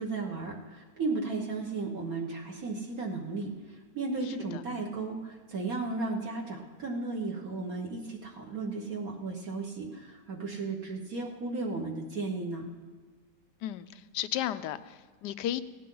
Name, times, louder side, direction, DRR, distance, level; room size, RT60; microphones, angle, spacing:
voice 1, 0.0-12.7, right 3 dB, 55° right, -1 dB, 1.8 m, -35 dB
voice 2, 13.6-15.6, left 12 dB, 80° left, 13 dB, 1.2 m, -34 dB
17.0 x 17.0 x 3.9 m, 1.4 s
omnidirectional pair, 1.8 m